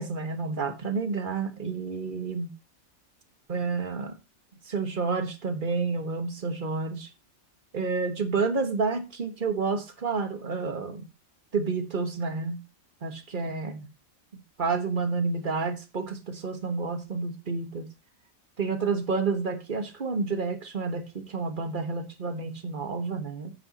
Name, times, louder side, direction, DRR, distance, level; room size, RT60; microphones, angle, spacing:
voice 1, 0.0-2.5 3.5-4.1 4.6-7.1 7.7-11.1 11.5-12.6 13.0-13.9 14.6-17.9 18.6-23.5, right 4 dB, 35° right, 1.5 m, -30 dB
9.0 x 7.5 x 4.1 m
omnidirectional pair, 1.5 m